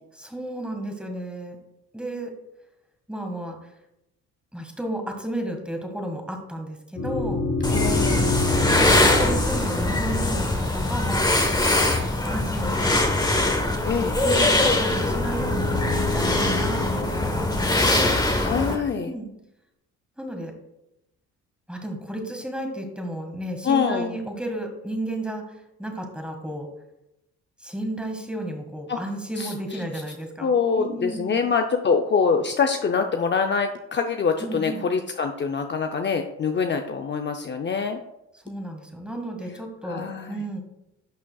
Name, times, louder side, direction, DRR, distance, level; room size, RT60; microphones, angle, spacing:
voice 1, 0.1-1.6 1.9-2.3 3.1-3.6 4.5-7.5 8.1-8.4 8.7-11.4 12.2-13.0 14.2-18.2 18.9-19.3 20.2-20.5 21.7-25.4 25.8-26.7 27.6-31.5 34.4-34.8 38.4-40.6, right 1 dB, 5° right, 3 dB, 1.7 m, -32 dB
sound 1, 6.9-11.3 14.4-17.7, left 2 dB, 85° left, 2.8 m, -29 dB
sound 2, 7.6-18.8, left 2 dB, 15° left, 1.1 m, -22 dB
voice 2, 7.7-8.4 13.8-14.2 18.3-19.1 23.6-24.1 28.9-29.0 29.4-29.8 30.4-38.0 39.8-40.4, left 5 dB, 40° left, 4 dB, 0.6 m, -25 dB
11.5 x 6.1 x 2.3 m, 0.87 s
cardioid pair, 90°, 30 cm